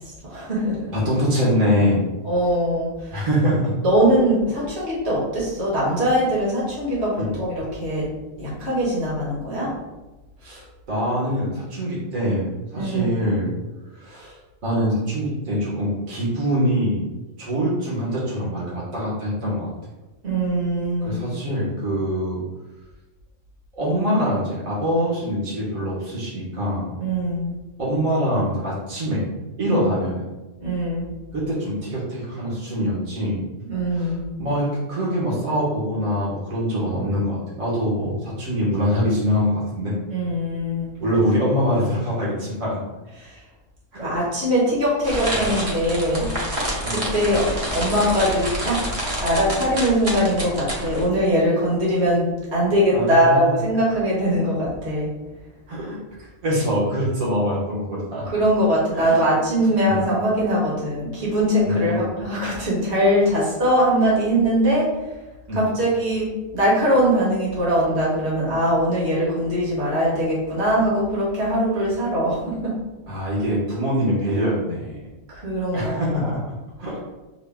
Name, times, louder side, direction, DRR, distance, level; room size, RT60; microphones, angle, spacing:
voice 1, 0.2-0.9 2.2-3.2 3.8-8.1 8.4-9.7 12.8-13.2 20.2-21.2 27.0-27.5 30.6-31.0 33.6-34.3 40.1-40.9 43.2-43.4 44.0-46.4 46.9-47.5 47.7-48.8 49.2-55.1 58.3-65.1 65.5-72.7 75.3-76.3, equal, 55° right, -6 dB, 1.9 m, -21 dB
voice 2, 0.9-2.0 3.1-3.7 7.2-7.3 10.4-12.5 12.7-13.5 14.0-14.4 14.6-17.0 17.4-19.7 21.0-22.4 23.7-26.9 27.8-29.2 29.6-30.3 31.3-33.4 33.9-34.1 34.4-39.9 41.0-42.8 43.9-44.1 46.8-47.0 52.9-53.5 55.7-56.0 56.4-58.2 58.9-59.2 59.9-60.0 61.6-62.1 65.5-65.6 73.1-75.0 75.7-76.4 76.8-77.0, equal, 90° right, -6 dB, 1.7 m, -24 dB
sound 1, 45.0-51.1, equal, 30° right, 1.0 m, -28 dB
6.6 x 2.2 x 3.6 m, 1.1 s
omnidirectional pair, 1.4 m